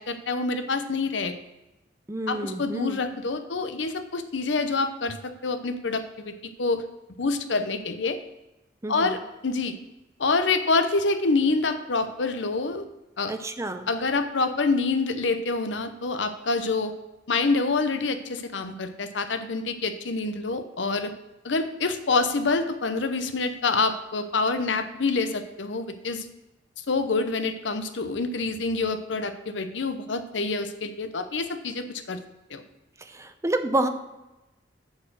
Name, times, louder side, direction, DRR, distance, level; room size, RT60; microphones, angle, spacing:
voice 1, 0.0-1.3 2.3-6.3 6.6-6.8 7.2-8.2 8.9-9.8 10.2-12.8 13.2-13.3 13.9-16.9 17.3-21.1 21.4-26.3 26.9-32.2 32.5-32.6, left 3 dB, 70° left, 9 dB, 0.8 m, -26 dB
voice 2, 2.1-3.0 8.8-9.1 13.3-13.9 33.0-33.9, right 1 dB, 15° right, 8 dB, 0.6 m, -29 dB
7.2 x 6.5 x 6.3 m, 1.0 s
head